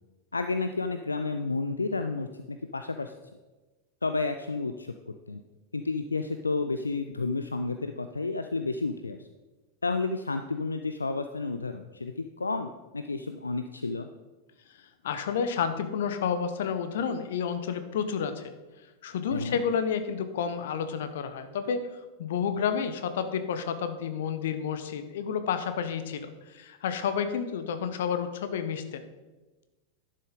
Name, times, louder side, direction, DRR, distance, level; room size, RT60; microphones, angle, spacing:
voice 1, 0.3-3.1 4.0-5.4 5.7-9.3 9.8-14.1 19.3-19.6, left 3 dB, 80° left, 8 dB, 0.4 m, -31 dB
voice 2, 15.0-18.5 19.0-29.0, left 7 dB, 60° left, 10 dB, 0.8 m, -30 dB
11.0 x 6.6 x 3.8 m, 1.2 s
figure-of-eight pair, 90°, 0 cm